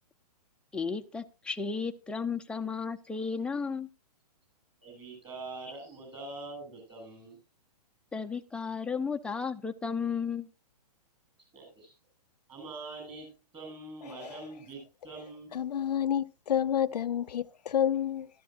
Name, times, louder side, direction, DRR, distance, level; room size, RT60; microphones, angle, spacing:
voice 1, 0.7-3.9 8.1-10.5, left 5 dB, 5° left, 0.8 m, -34 dB
voice 2, 4.8-7.4 11.5-11.9 12.5-13.3 13.5-15.5, right 3 dB, 20° right, 7.3 m, -44 dB
voice 3, 14.1-14.4 15.5-18.3, left 9 dB, 85° left, 0.6 m, -29 dB
14.5 x 13.0 x 2.5 m
hypercardioid pair, 145°, 20 cm